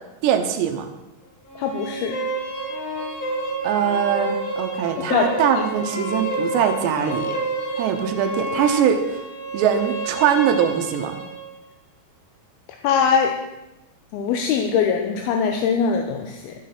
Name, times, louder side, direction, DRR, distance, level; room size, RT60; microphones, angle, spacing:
voice 1, 0.2-0.9 3.6-7.4 7.8-9.2 9.5-11.2, right 8 dB, 85° right, 6 dB, 3.1 m, -22 dB
sound 1, 1.5-11.4, right 2 dB, 50° left, 4.6 m, -29 dB
voice 2, 1.6-2.2 5.1-5.3 12.8-13.4 14.1-16.5, left 6 dB, 75° left, 4 dB, 2.5 m, -21 dB
12.5 x 8.8 x 5.9 m, 0.98 s
omnidirectional pair, 4.9 m